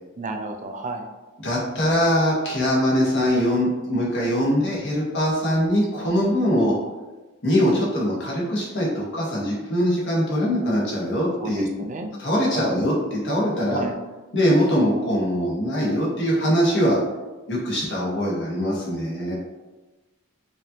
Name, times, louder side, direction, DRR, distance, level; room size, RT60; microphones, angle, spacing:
voice 1, 0.2-1.1 11.4-12.1 12.5-12.8 13.7-13.9, right 2 dB, 35° right, 4 dB, 0.4 m, -31 dB
voice 2, 1.4-6.7 7.4-11.6 12.2-13.8 14.3-17.0 17.5-19.3, equal, 55° left, -5 dB, 1.3 m, -22 dB
4.9 x 2.7 x 2.8 m, 1.2 s
head